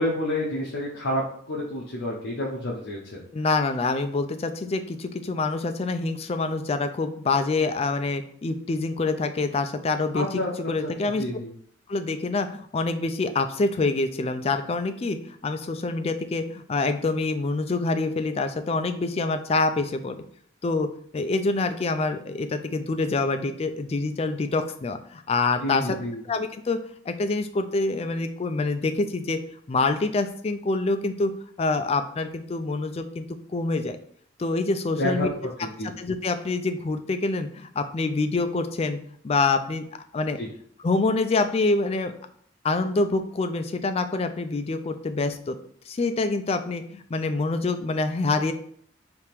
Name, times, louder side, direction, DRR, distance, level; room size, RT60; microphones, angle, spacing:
voice 1, 0.0-3.2 10.1-10.9 11.2-11.5 25.6-26.2 35.0-35.3 35.6-35.9 40.4-40.5, left 1 dB, 65° left, -3 dB, 0.8 m, -29 dB
voice 2, 3.3-10.4 10.7-11.2 11.9-20.2 20.6-26.0 26.2-29.4 29.7-31.3 31.6-33.3 33.5-34.0 34.4-35.3 35.8-39.0 39.2-39.8 40.1-40.4 40.8-42.1 42.6-45.6 45.9-48.5, left 3 dB, 30° left, 8 dB, 0.3 m, -26 dB
3.5 x 2.8 x 4.5 m, 0.62 s
head